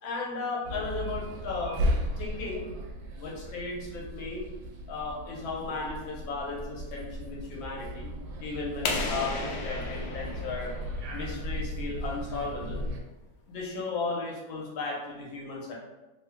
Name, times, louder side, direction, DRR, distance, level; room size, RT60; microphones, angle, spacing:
voice 1, 0.0-1.8 2.2-2.7 3.2-4.4 4.9-8.1 8.4-10.7 11.1-12.8 13.5-15.7, left 3 dB, 90° left, -3 dB, 1.6 m, -35 dB
sound 1, 0.6-13.0, equal, 85° right, 1.4 m, -36 dB
sound 2, 8.8-11.5, left 3 dB, 70° left, 1.0 m, -34 dB
3.6 x 2.2 x 3.4 m, 1.1 s
omnidirectional pair, 2.1 m